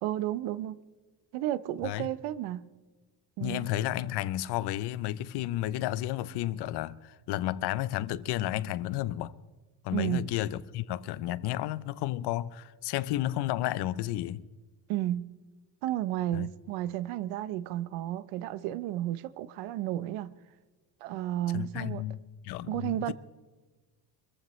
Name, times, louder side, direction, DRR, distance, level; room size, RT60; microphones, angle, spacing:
voice 1, 0.0-0.8 1.3-2.7 3.4-3.7 9.9-10.3 14.9-15.3 15.8-20.3 21.0-22.0 22.7-23.1, right 13 dB, 85° right, 0.8 m, -32 dB
voice 2, 3.4-9.3 9.8-14.4 16.3-16.5 21.5-23.1, left 14 dB, 55° left, 0.6 m, -32 dB
23.5 x 15.0 x 3.1 m
cardioid pair, 160°, 48 cm